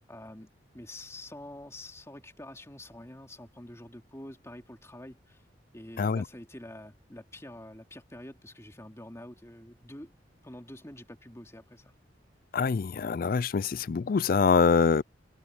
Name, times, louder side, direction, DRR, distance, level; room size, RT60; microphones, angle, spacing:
voice 1, 0.1-5.4 5.7-10.1 10.4-11.9, left 1 dB, 15° left, 3.0 m, -46 dB
voice 2, 12.5-15.0, left 5 dB, 50° left, 0.4 m, -24 dB
head